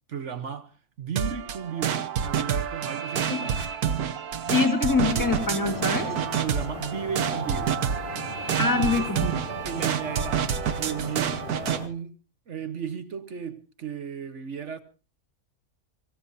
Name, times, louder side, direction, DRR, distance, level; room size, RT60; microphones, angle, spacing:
voice 1, 0.1-3.7 4.6-4.8 6.1-7.8 8.5-9.1 9.6-10.4 10.7-12.2 12.5-14.8, right 7 dB, 55° right, 1.3 m, -35 dB
sound 1, 1.2-11.8, right 8 dB, 90° right, 1.5 m, -28 dB
voice 2, 4.5-6.1 8.6-9.3, left 4 dB, 10° left, 2.5 m, -24 dB
sound 2, 5.0-11.9, left 4 dB, 40° left, 1.4 m, -39 dB
25.5 x 16.0 x 2.7 m
omnidirectional pair, 1.6 m